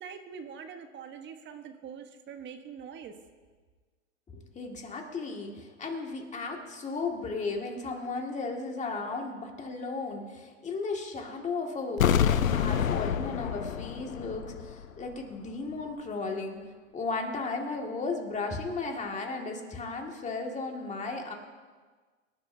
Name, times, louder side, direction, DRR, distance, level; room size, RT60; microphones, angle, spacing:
voice 1, 0.0-3.1, right 7 dB, 30° right, 7 dB, 1.3 m, -44 dB
voice 2, 4.3-16.6 16.9-21.3, left 3 dB, 20° left, 2 dB, 2.1 m, -35 dB
sound 1, 12.0-14.9 15.1-15.2, left 9 dB, 90° left, 0.8 m, -27 dB
24.5 x 11.0 x 2.8 m, 1.4 s
hypercardioid pair, 110°, 39 cm